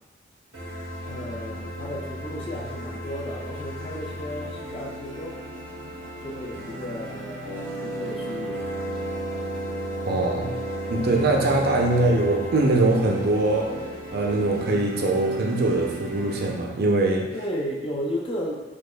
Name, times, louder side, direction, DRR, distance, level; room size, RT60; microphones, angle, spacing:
sound 1, 0.5-16.5, equal, 85° right, 0.8 m, -37 dB
voice 1, 1.0-5.4 6.2-8.7 17.3-18.6, equal, 30° left, -2 dB, 0.4 m, -34 dB
Wind instrument woodwind instrument, 7.4-14.0, right 1 dB, 70° left, 0.6 m, -33 dB
voice 2, 10.1-10.5 10.9-13.8 14.1-17.3, right 2 dB, 50° right, 0 dB, 0.5 m, -22 dB
5.0 x 2.3 x 2.2 m, 1.1 s
head